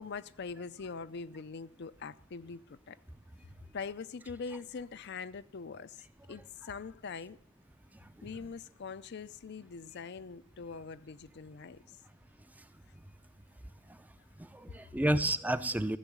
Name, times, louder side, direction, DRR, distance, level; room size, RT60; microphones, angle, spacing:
voice 1, 0.0-3.0 3.7-7.4 8.2-11.8, left 5 dB, 55° left, 0.5 m, -43 dB
voice 2, 7.9-8.3 12.6-12.7 13.9-14.0 14.4-16.0, right 1 dB, 10° right, 0.5 m, -32 dB
15.0 x 7.1 x 10.0 m
head